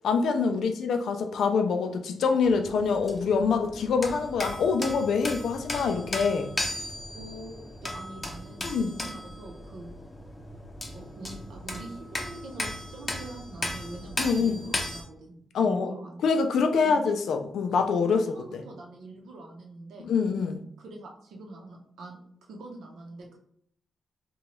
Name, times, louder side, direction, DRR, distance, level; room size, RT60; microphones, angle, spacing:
voice 1, 0.0-6.5 8.6-8.9 14.2-14.6 15.5-15.9 16.2-18.6 20.0-20.6, left 5 dB, 80° left, 6 dB, 0.4 m, -25 dB
sound 1, 2.4-15.0, left 1 dB, 20° left, 0.6 m, -36 dB
voice 2, 7.1-9.9 10.9-16.3 16.8-17.1 17.7-17.8 18.1-20.1 20.8-23.4, right 2 dB, 85° right, 1 dB, 0.7 m, -44 dB
2.9 x 2.3 x 3.0 m, 0.66 s
cardioid pair, 90°, 0 cm